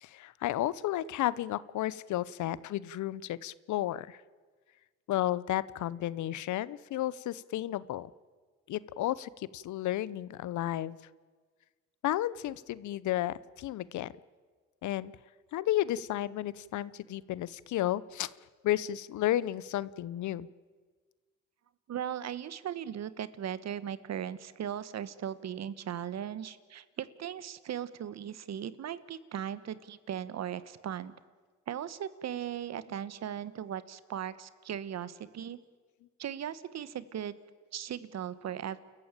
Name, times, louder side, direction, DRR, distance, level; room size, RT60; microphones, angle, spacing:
voice 1, 0.0-4.2 5.1-8.1 8.7-11.0 12.0-14.1 14.8-15.1 15.5-18.3 18.6-20.5, left 13 dB, 75° left, 20 dB, 0.7 m, -32 dB
voice 2, 21.9-31.1 31.7-35.6 36.2-37.4 37.7-38.8, right 9 dB, 60° right, 16 dB, 1.1 m, -38 dB
29.5 x 14.0 x 8.9 m, 1.5 s
cardioid pair, 90°, 30 cm